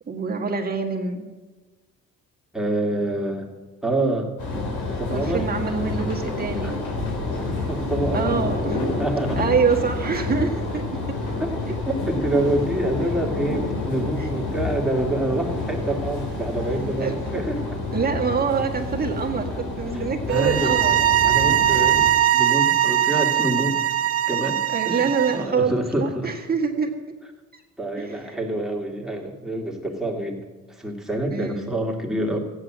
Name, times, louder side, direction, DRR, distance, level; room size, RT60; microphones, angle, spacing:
voice 1, 0.1-1.3 5.1-6.8 8.1-8.8 9.4-10.9 11.7-11.8 14.2-14.3 17.0-17.1 17.9-21.6 24.7-26.9 28.0-28.4 31.3-31.7, right 5 dB, 30° right, 1 dB, 1.8 m, -25 dB
voice 2, 2.5-3.5 3.8-4.3 4.9-5.5 6.6-6.7 7.7-8.6 9.0-9.5 11.4-11.5 11.9-17.8 19.9-20.8 21.2-23.8 24.3-26.3 27.8-32.4, right 1 dB, ahead, 0 dB, 2.4 m, -27 dB
sound 1, 4.4-22.1, left 3 dB, 80° left, 3.7 m, -28 dB
sound 2, 20.3-25.4, right 11 dB, 50° right, 0.7 m, -21 dB
14.0 x 9.5 x 7.5 m, 1.3 s
cardioid pair, 90°, 30 cm